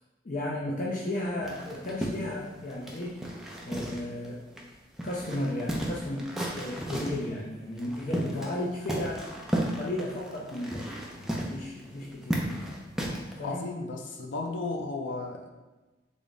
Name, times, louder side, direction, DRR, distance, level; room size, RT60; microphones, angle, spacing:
voice 1, 0.2-3.2 3.6-4.4 5.0-9.3 9.8-10.9 11.2-12.4 13.4-13.7, left 1 dB, 45° left, -5 dB, 0.6 m, -34 dB
sound 1, 1.4-4.3 4.6-4.7 5.0-7.3 7.8-8.6 8.9-13.3, right 1 dB, ahead, 0.5 m, -34 dB
voice 2, 13.4-15.5, left 3 dB, 90° left, 3 dB, 0.5 m, -34 dB
3.7 x 3.4 x 4.0 m, 1.1 s
head